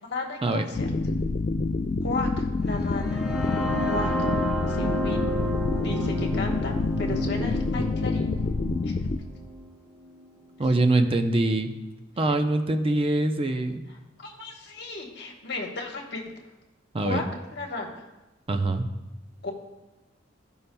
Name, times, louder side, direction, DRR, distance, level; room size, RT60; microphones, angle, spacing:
voice 1, 0.0-0.9 2.0-3.2 3.9-4.3 4.7-5.3 5.8-8.4 8.8-9.0 12.3-12.4 13.9-16.2 17.0-17.2 17.5-18.0 19.4-19.5, left 3 dB, 60° left, 1 dB, 1.2 m, -34 dB
sound 1, 0.8-9.2, left 3 dB, 35° left, 0.3 m, -27 dB
sound 2, 2.7-10.6, right 1 dB, 5° right, 1.4 m, -32 dB
voice 2, 10.6-11.7 12.2-13.8 16.9-17.2 18.5-18.8, right 2 dB, 30° right, 6 dB, 0.5 m, -23 dB
14.5 x 5.4 x 2.2 m, 1.0 s
head